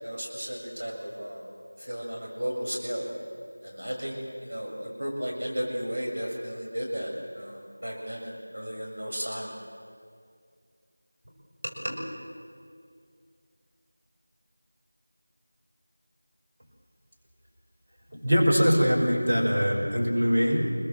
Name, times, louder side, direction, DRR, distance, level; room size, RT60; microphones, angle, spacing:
voice 1, 0.0-1.4 1.9-3.1 3.6-7.1 7.4-9.5 11.8-12.0, equal, 70° right, -1 dB, 7.4 m, -34 dB
voice 2, 18.1-20.7, equal, 35° right, -3 dB, 5.7 m, -23 dB
28.5 x 22.5 x 7.3 m, 2.2 s
figure-of-eight pair, 180°, 0 cm